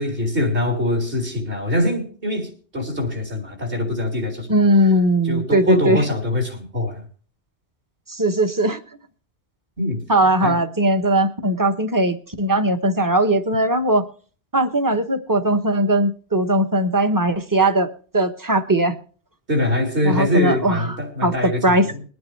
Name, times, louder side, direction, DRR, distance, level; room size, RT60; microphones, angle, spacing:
voice 1, 0.0-4.6 5.2-7.0 9.8-10.0 10.4-10.6 19.5-22.0, left 1 dB, 55° right, 1 dB, 4.1 m, -23 dB
voice 2, 4.5-6.0 8.1-8.8 10.1-14.0 14.5-17.9 18.1-19.0 20.0-20.9 21.2-21.3 21.6-21.8, right 1 dB, 20° right, 7 dB, 1.1 m, -19 dB
22.5 x 9.4 x 3.3 m, 0.42 s
omnidirectional pair, 1.1 m